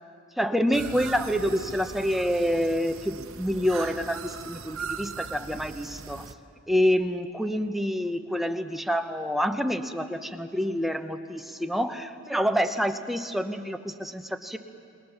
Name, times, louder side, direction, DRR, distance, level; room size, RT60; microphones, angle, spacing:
voice 1, 0.4-6.2 6.7-14.6, equal, ahead, 6 dB, 0.8 m, -27 dB
sound 1, 0.7-6.3, right 5 dB, 75° right, 0.9 m, -39 dB
28.0 x 20.5 x 7.2 m, 2.6 s
head